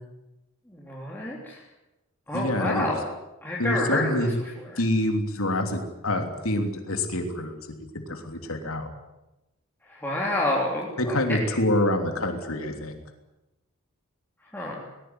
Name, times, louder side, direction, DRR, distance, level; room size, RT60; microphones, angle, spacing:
voice 1, 0.7-1.6 2.3-3.1 3.4-4.3 4.7-4.8 9.9-11.6 14.5-14.8, left 2 dB, 10° left, -4 dB, 3.4 m, -29 dB
voice 2, 2.3-2.9 3.6-4.3 4.8-8.9 11.0-12.9, left 1 dB, 75° left, 4 dB, 3.2 m, -26 dB
20.0 x 19.5 x 9.6 m, 0.97 s
head